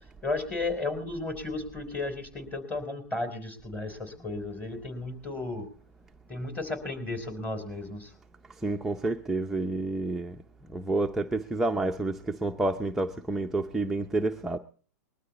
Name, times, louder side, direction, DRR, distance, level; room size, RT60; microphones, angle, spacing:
voice 1, 0.2-5.7 6.3-8.1, left 2 dB, 15° left, 3.6 m, -34 dB
voice 2, 8.6-10.4 10.7-14.6, right 2 dB, 5° right, 0.6 m, -29 dB
21.0 x 12.5 x 4.1 m
hypercardioid pair, 135°, 9 cm